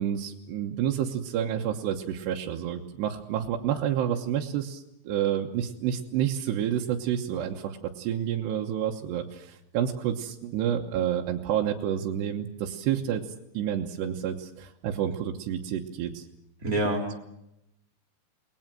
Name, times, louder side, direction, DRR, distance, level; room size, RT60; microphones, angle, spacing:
voice 1, 0.0-13.2 13.5-16.3, right 10 dB, 70° right, 0 dB, 2.9 m, -29 dB
voice 2, 16.6-17.2, right 1 dB, 20° right, 2 dB, 3.2 m, -27 dB
30.0 x 20.5 x 7.6 m, 0.85 s
omnidirectional pair, 6.0 m